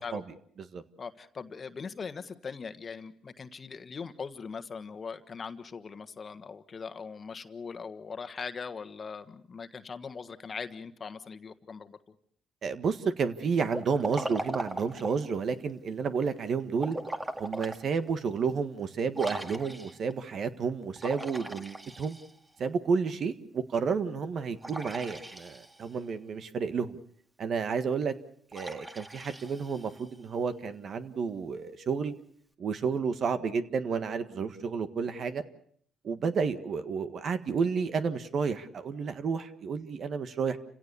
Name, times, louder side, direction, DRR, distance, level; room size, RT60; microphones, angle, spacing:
voice 1, 1.0-12.1, left 5 dB, 40° left, 10 dB, 1.5 m, -41 dB
voice 2, 12.6-17.0 17.4-22.2 22.6-27.0 27.4-28.1 28.5-32.1 32.6-35.4 36.0-40.6, right 5 dB, 55° right, 10 dB, 1.7 m, -31 dB
Liquid, 13.7-15.3 16.7-17.8 18.3-18.4 19.1-20.1 21.0-22.6 24.6-26.0 28.5-30.2, right 1 dB, 15° right, 2.0 m, -39 dB
29.5 x 17.0 x 7.0 m, 0.63 s
cardioid pair, 90°, 0 cm